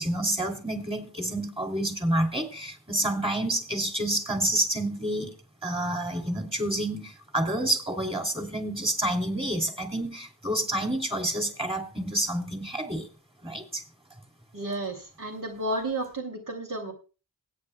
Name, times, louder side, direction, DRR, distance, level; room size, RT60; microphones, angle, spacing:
voice 1, 0.0-5.3 5.6-13.1 13.4-13.8, right 1 dB, 15° right, 2.8 m, -29 dB
voice 2, 14.5-16.9, right 1 dB, 50° right, 2.6 m, -32 dB
23.5 x 8.8 x 2.2 m
cardioid pair, 60°, 39 cm